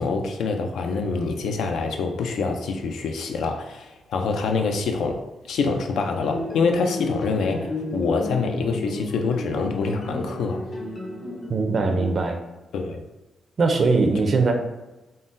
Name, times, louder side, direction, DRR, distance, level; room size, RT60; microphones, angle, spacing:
voice 1, 0.0-10.7 12.7-13.0, left 4 dB, 85° left, 4 dB, 0.3 m, -25 dB
sound 1, 6.2-12.1, left 1 dB, 45° left, 0.7 m, -33 dB
voice 2, 11.5-12.4 13.6-14.5, right 3 dB, 45° right, 4 dB, 0.4 m, -21 dB
3.7 x 2.0 x 2.5 m, 1.0 s
cardioid pair, 105°, 0 cm